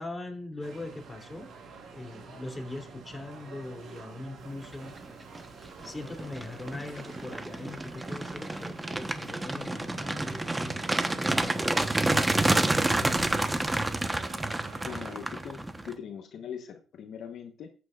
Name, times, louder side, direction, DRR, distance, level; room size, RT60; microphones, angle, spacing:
voice 1, 0.0-1.5 1.9-5.0 5.8-10.8 11.2-13.4, left 2 dB, 20° left, 3 dB, 3.0 m, -41 dB
sound 1, 0.6-15.2, right 5 dB, 70° right, 3.7 m, -48 dB
sound 2, 5.1-5.4 5.8-15.9, right 2 dB, 15° right, 1.0 m, -29 dB
voice 2, 14.8-17.7, left 8 dB, 70° left, 5 dB, 1.1 m, -41 dB
14.5 x 8.3 x 2.4 m, 0.36 s
cardioid pair, 90°, 0 cm